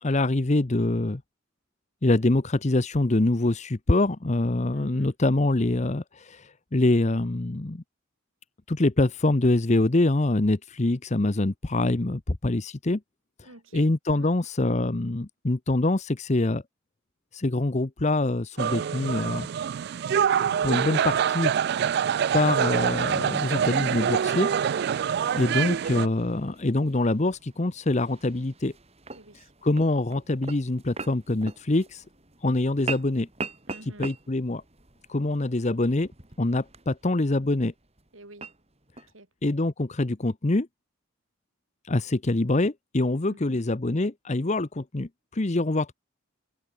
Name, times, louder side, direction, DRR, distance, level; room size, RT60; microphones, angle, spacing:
voice 1, 0.0-1.2 2.0-7.8 8.7-13.0 13.7-16.6 17.3-19.5 20.6-21.5 22.3-24.5 25.3-28.7 29.6-32.0 32.4-33.3 34.0-34.6 35.1-36.1 36.4-37.7 39.4-40.7 41.9-45.9, left 2 dB, 35° left, 0.8 m, -25 dB
voice 2, 4.7-5.1 13.4-13.9 14.1-14.3 25.2-25.6 29.1-29.5 33.7-34.1 38.1-38.5 39.1-39.3 43.3-43.6, right 2 dB, 70° right, 3.9 m, -48 dB
sound 1, 18.6-26.1, right 8 dB, 50° right, 0.3 m, -25 dB
sound 2, 23.9-39.1, right 3 dB, 30° right, 3.6 m, -43 dB
open air
head